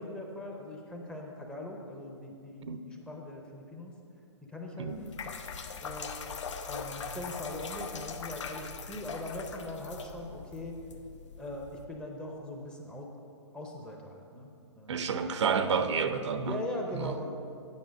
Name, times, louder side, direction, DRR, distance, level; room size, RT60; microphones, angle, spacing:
voice 1, 0.0-3.9 4.4-5.1 5.8-6.3 6.6-10.8 11.4-13.1 13.5-15.1 16.4-17.3, left 1 dB, 5° left, 0 dB, 0.6 m, -41 dB
sound 1, 4.9-11.8, left 5 dB, 75° left, 0.9 m, -41 dB
voice 2, 14.9-16.6 16.9-17.1, right 6 dB, 70° right, 10 dB, 0.6 m, -30 dB
9.5 x 5.6 x 6.3 m, 2.6 s
hypercardioid pair, 155°, 15 cm